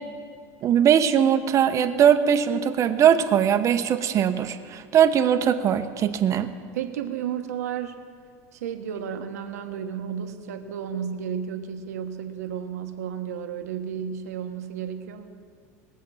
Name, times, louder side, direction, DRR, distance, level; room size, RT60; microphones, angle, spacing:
voice 1, 0.6-6.5, right 9 dB, 40° right, 9 dB, 0.9 m, -20 dB
voice 2, 6.7-8.0 8.5-15.3, right 8 dB, 90° right, 6 dB, 1.2 m, -32 dB
21.0 x 7.6 x 5.7 m, 2.2 s
supercardioid pair, 110°, 8 cm